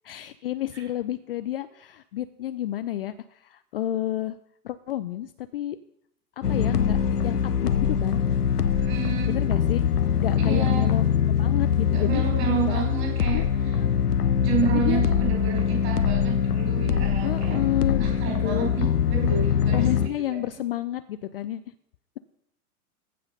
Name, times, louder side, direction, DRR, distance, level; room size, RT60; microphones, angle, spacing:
voice 1, 0.0-4.4 4.6-5.8 6.4-7.0 7.2-8.2 9.3-9.9 10.2-12.2 12.7-12.8 13.3-13.5 13.8-13.9 14.7-15.0 17.2-18.7 19.7-21.6, left 13 dB, 40° left, 12 dB, 0.4 m, -30 dB
sound 1, 6.4-20.1, left 7 dB, 80° left, 0.7 m, -23 dB
voice 2, 8.8-9.3 10.4-10.9 11.9-13.8 14.4-17.6 18.0-19.9, right 7 dB, 35° right, 1 dB, 4.9 m, -30 dB
15.0 x 5.6 x 5.4 m, 0.74 s
figure-of-eight pair, 95°, 45 cm